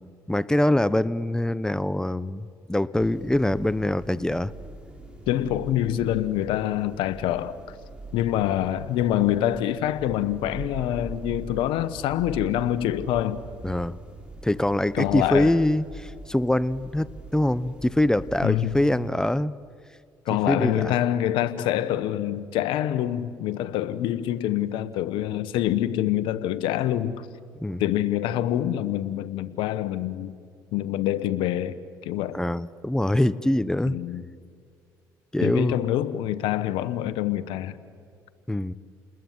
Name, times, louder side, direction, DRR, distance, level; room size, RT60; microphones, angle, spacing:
voice 1, 0.3-4.5 13.6-14.0 14.4-19.5 20.5-21.0 27.6-27.8 32.3-34.0 35.3-35.8 38.5-38.7, left 1 dB, 5° left, 0.9 m, -24 dB
Room tone habitación, 2.9-19.1, right 2 dB, 10° right, 6.3 m, -42 dB
voice 2, 5.3-7.6 8.1-13.4 14.9-15.6 18.4-18.7 20.3-27.1 27.8-30.3 30.7-32.4 33.9-34.2 35.4-37.8, left 12 dB, 80° left, 1.3 m, -26 dB
29.5 x 20.5 x 9.6 m
supercardioid pair, 75°, 8 cm